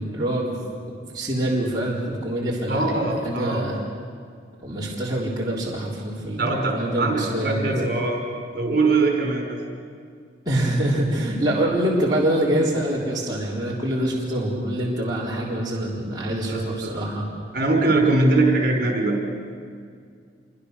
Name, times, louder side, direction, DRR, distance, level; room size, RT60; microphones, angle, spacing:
voice 1, 0.0-3.8 4.6-7.7 10.5-17.3, right 1 dB, 20° right, -6 dB, 3.9 m, -25 dB
voice 2, 2.7-3.7 6.4-8.2 8.5-9.6 16.5-16.9 17.5-19.2, right 2 dB, 50° right, 1 dB, 5.1 m, -22 dB
27.5 x 24.0 x 6.7 m, 2.2 s
head